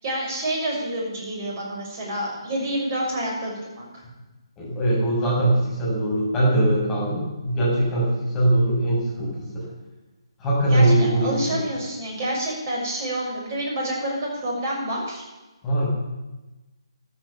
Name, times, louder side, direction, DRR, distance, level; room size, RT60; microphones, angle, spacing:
voice 1, 0.0-4.0 10.7-15.2, right 1 dB, 30° right, -2 dB, 6.5 m, -28 dB
voice 2, 4.6-9.6 10.4-11.6 15.6-15.9, right 1 dB, 15° left, -5 dB, 7.5 m, -21 dB
13.5 x 13.0 x 7.5 m, 1.1 s
figure-of-eight pair, 140°, 3 cm